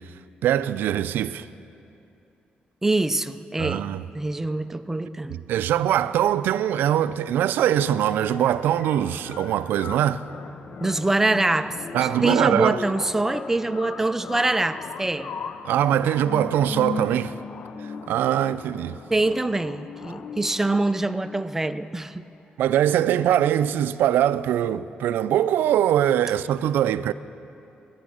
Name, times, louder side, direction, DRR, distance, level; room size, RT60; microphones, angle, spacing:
voice 1, 0.4-1.5 3.6-4.0 5.3-10.2 11.9-12.8 15.6-17.3 17.8-19.0 22.6-27.1, right 11 dB, 90° right, 0.3 m, -22 dB
voice 2, 2.8-3.9 4.1-5.4 10.8-15.3 19.1-22.2, right 2 dB, 10° right, 0.4 m, -24 dB
sound 1, 7.7-21.7, left 5 dB, 50° left, 0.5 m, -38 dB
13.5 x 9.5 x 6.4 m
cardioid pair, 105°, 3 cm